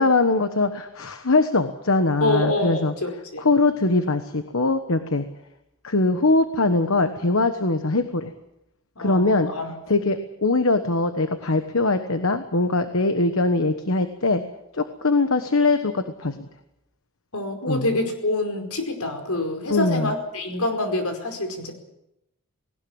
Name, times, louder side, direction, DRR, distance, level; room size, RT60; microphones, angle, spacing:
voice 1, 0.0-2.9 3.4-5.2 5.8-8.3 9.0-9.5 9.9-14.4 14.7-16.5 17.7-17.9 19.7-20.1, left 3 dB, 65° left, 9 dB, 1.2 m, -22 dB
voice 2, 2.2-3.5 9.0-9.7 17.3-21.7, left 2 dB, 80° left, 4 dB, 4.9 m, -26 dB
19.5 x 18.5 x 8.8 m, 0.83 s
head